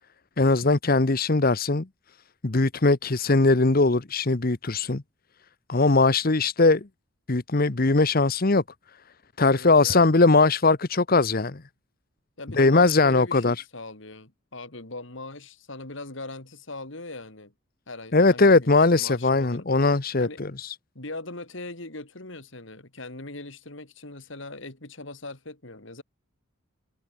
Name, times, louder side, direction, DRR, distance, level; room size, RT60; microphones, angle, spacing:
voice 1, 0.4-1.9 2.4-5.0 5.7-6.9 7.3-8.6 9.4-11.6 12.5-13.6 18.1-20.7, left 3 dB, 45° left, 1.0 m, -20 dB
voice 2, 9.5-10.1 12.4-17.5 17.9-19.7 20.2-20.4 20.9-26.0, left 2 dB, 65° left, 3.2 m, -40 dB
head